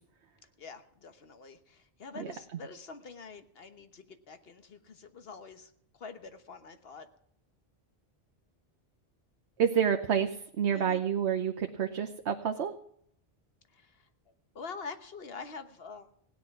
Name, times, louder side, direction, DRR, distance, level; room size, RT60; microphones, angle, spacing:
voice 1, 0.6-7.1 10.7-11.0 13.7-14.1 14.5-16.1, left 4 dB, 65° left, 9 dB, 1.4 m, -46 dB
voice 2, 9.6-12.7, right 8 dB, 90° right, 5 dB, 1.2 m, -28 dB
16.5 x 10.0 x 5.9 m, 0.68 s
omnidirectional pair, 1.1 m